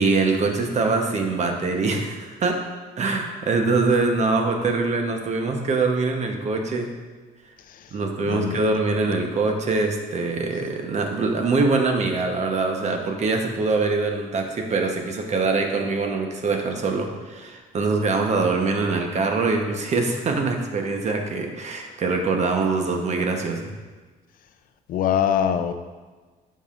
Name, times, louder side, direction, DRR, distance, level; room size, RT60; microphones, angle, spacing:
voice 1, 0.0-2.6 3.0-6.9 7.9-23.7, right 3 dB, 40° right, 3 dB, 1.0 m, -23 dB
voice 2, 8.3-8.6 24.9-25.7, left 9 dB, 55° left, 9 dB, 0.5 m, -22 dB
9.6 x 5.6 x 2.5 m, 1.3 s
cardioid pair, 110°, 17 cm